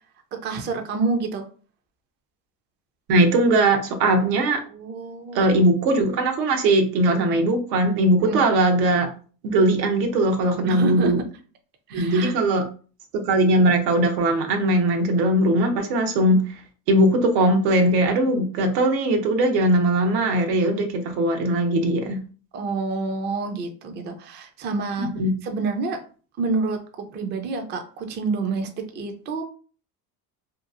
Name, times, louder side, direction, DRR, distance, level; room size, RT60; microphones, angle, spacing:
voice 1, 0.4-1.4 4.6-5.5 8.2-8.5 10.7-11.1 11.9-12.4 22.5-25.1 25.4-26.0 26.4-28.7 28.9-29.4, right 3 dB, 25° right, 5 dB, 0.3 m, -28 dB
voice 2, 3.1-4.6 5.3-9.1 9.4-11.2 11.9-12.6 13.1-16.4 16.9-22.2 25.0-25.3, right 1 dB, 85° right, 4 dB, 0.9 m, -20 dB
2.9 x 2.4 x 2.4 m, 0.39 s
supercardioid pair, 115°, 48 cm